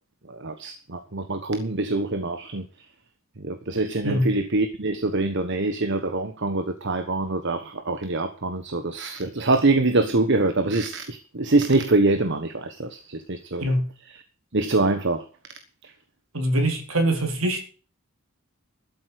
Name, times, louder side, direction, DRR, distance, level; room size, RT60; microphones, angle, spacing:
voice 1, 0.3-2.7 3.4-13.6 14.5-15.2 15.8-15.9, right 2 dB, 60° right, 1.3 m, -24 dB
voice 2, 16.3-17.6, right 1 dB, 75° right, 4.1 m, -23 dB
13.0 x 7.9 x 6.6 m
head